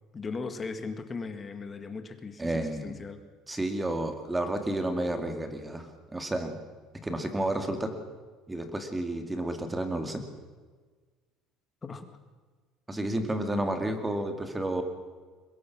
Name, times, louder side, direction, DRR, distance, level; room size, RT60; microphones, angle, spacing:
voice 1, 0.1-2.5 2.8-3.2 11.8-12.2, left 4 dB, 20° left, 8 dB, 1.9 m, -38 dB
voice 2, 2.4-3.0 3.5-6.6 7.0-7.9 8.5-10.2 12.9-14.8, right 1 dB, 10° right, 6 dB, 2.4 m, -31 dB
23.0 x 21.0 x 6.2 m, 1.4 s
cardioid pair, 140°, 0 cm